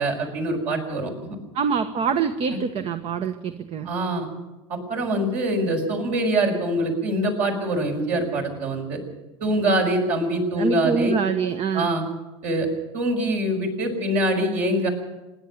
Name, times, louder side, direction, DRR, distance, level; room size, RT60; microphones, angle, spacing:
voice 1, 0.0-1.4 2.5-2.6 3.8-4.3 4.7-9.0 9.4-11.2 11.7-12.0 12.4-12.7 12.9-14.9, right 1 dB, 60° right, 1 dB, 5.8 m, -24 dB
voice 2, 1.5-3.9 10.5-11.9, right 6 dB, 40° right, 9 dB, 1.2 m, -25 dB
26.0 x 11.0 x 9.3 m, 1.1 s
hypercardioid pair, 75°, 15 cm